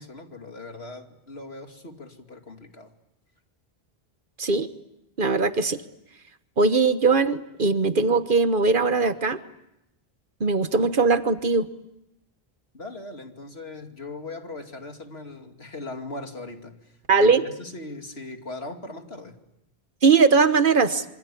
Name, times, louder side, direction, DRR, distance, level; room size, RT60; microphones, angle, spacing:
voice 1, 0.0-2.9 12.7-16.8 17.2-19.4, left 2 dB, 85° left, 4 dB, 3.0 m, -39 dB
voice 2, 4.4-4.7 5.2-5.8 6.6-9.4 10.4-11.7 17.1-17.4 20.0-21.0, right 4 dB, 55° right, 11 dB, 1.4 m, -20 dB
27.0 x 25.0 x 8.5 m, 0.87 s
omnidirectional pair, 1.0 m